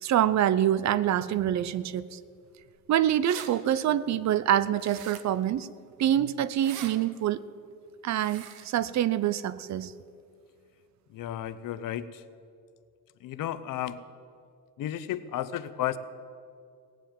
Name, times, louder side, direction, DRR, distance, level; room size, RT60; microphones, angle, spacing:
voice 1, 0.0-2.2 2.9-5.7 6.0-7.4 8.0-9.9, right 11 dB, 50° right, 17 dB, 0.5 m, -26 dB
sound 1, 2.8-2.9 3.0-3.5 4.8-5.4 6.5-6.9 8.1-8.7, right 10 dB, 90° right, 1.2 m, -42 dB
voice 2, 11.1-12.2 13.2-14.0 14.8-16.0, left 12 dB, 60° left, 14 dB, 0.8 m, -33 dB
18.5 x 7.5 x 9.0 m, 2.3 s
cardioid pair, 130°, 36 cm